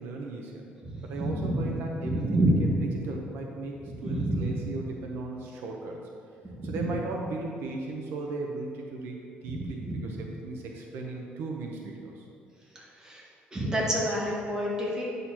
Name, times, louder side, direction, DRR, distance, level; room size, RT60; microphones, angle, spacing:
voice 1, 0.0-0.7 1.0-2.7 3.0-3.7 4.0-6.0 6.6-12.3, right 3 dB, 75° right, 1 dB, 0.8 m, -37 dB
voice 2, 0.8-1.6 2.1-2.5 4.0-4.6 9.5-9.9 13.0-13.2 13.5-15.0, right 1 dB, 20° right, -5 dB, 1.7 m, -28 dB
9.1 x 6.6 x 2.9 m, 2.5 s
cardioid pair, 145°, 4 cm